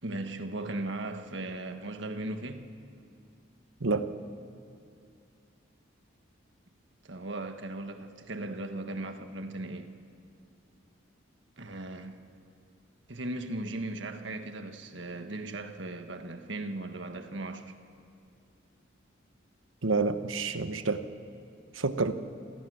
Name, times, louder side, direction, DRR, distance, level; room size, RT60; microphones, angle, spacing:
voice 1, 0.0-2.7 7.0-9.9 11.6-12.2 13.1-17.7, right 2 dB, 65° right, 1.5 m, -37 dB
voice 2, 19.8-21.0 21.7-22.1, right 3 dB, 90° right, 1.2 m, -28 dB
28.5 x 23.0 x 6.4 m
head